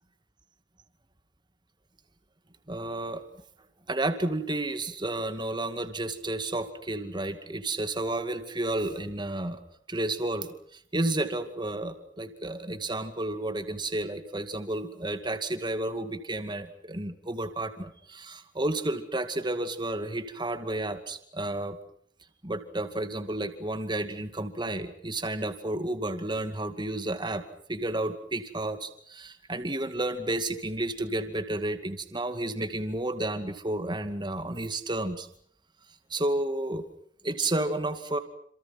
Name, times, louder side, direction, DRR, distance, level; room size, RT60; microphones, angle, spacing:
voice 1, 2.7-3.2 3.9-9.6 9.9-21.8 22.4-27.4 27.7-35.3 36.1-36.9 37.2-38.2, right 2 dB, 25° right, 9 dB, 2.3 m, -31 dB
27.5 x 27.5 x 6.1 m, 0.63 s
head